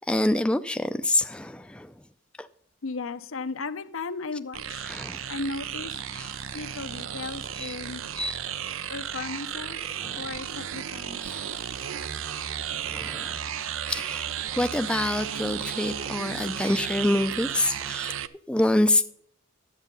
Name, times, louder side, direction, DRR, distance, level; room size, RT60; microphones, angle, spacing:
voice 1, 0.1-1.9 2.4-2.5 4.9-5.2 6.1-6.3 7.6-7.7 8.2-8.4 10.0-10.2 11.2-11.7 12.8-13.4 13.9-18.1 18.5-19.1, left 1 dB, 5° left, 0.4 m, -27 dB
voice 2, 2.8-4.9 5.3-6.0 6.5-8.0 8.9-11.2, left 3 dB, 85° left, 0.8 m, -36 dB
sound 1, 4.5-18.3, right 9 dB, 85° right, 0.5 m, -34 dB
11.5 x 8.1 x 5.3 m
head